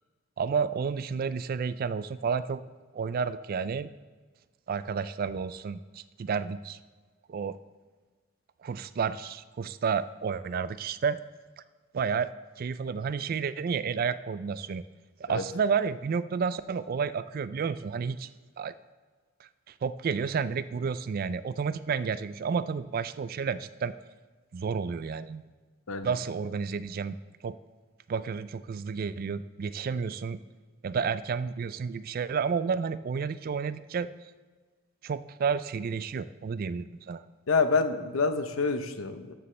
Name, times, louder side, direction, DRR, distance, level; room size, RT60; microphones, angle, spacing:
voice 1, 0.4-2.6 2.9-3.9 4.7-6.8 7.3-7.6 8.6-11.2 11.9-12.3 12.6-14.8 15.2-18.3 18.6-18.8 19.8-23.9 24.5-25.4 26.0-27.2 27.4-27.6 28.1-30.4 30.8-34.1 35.0-37.2, right 6 dB, 45° right, 15 dB, 0.3 m, -31 dB
voice 2, 37.5-39.3, left 4 dB, 80° left, 10 dB, 0.7 m, -27 dB
13.5 x 6.9 x 3.3 m, 1.4 s
head